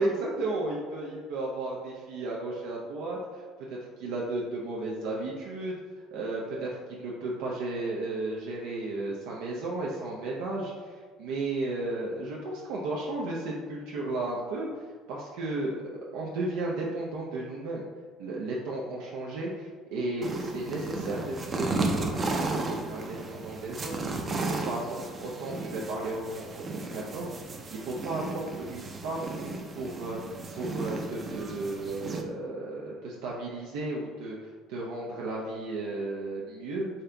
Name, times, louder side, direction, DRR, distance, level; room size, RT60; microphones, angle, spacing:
voice 1, 0.0-3.4 3.7-5.8 6.1-14.7 15.1-15.7 16.1-17.8 18.2-29.3 29.8-30.2 30.6-36.9, right 2 dB, 85° right, -4 dB, 0.7 m, -34 dB
sound 1, 20.2-32.2, right 3 dB, 30° right, 0.5 m, -34 dB
4.2 x 3.8 x 3.3 m, 1.5 s
cardioid pair, 130°, 0 cm